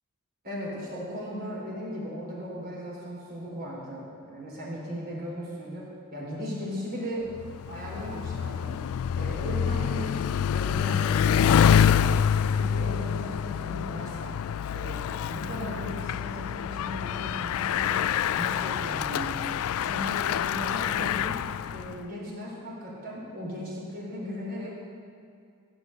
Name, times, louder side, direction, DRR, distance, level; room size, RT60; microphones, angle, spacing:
voice 1, 0.4-5.9 6.1-7.2 7.7-8.8 9.2-12.1 12.5-14.3 14.7-18.1 18.4-19.6 19.8-21.4 21.7-24.8, equal, 45° right, -5 dB, 4.0 m, -37 dB
Bicycle, 7.3-22.0, left 8 dB, 65° left, 0.3 m, -26 dB
15.5 x 6.3 x 8.8 m, 2.4 s
head